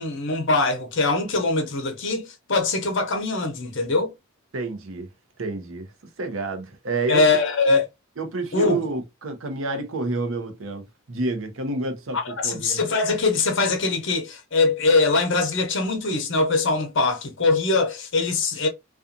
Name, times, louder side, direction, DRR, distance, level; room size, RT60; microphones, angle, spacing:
voice 1, 0.0-4.1 7.1-7.9 8.5-8.8 12.1-18.7, left 3 dB, 60° left, 0.7 m, -22 dB
voice 2, 4.5-5.1 5.4-5.9 6.2-7.2 8.2-12.8, right 3 dB, 70° right, 0.7 m, -29 dB
2.5 x 2.4 x 2.6 m
head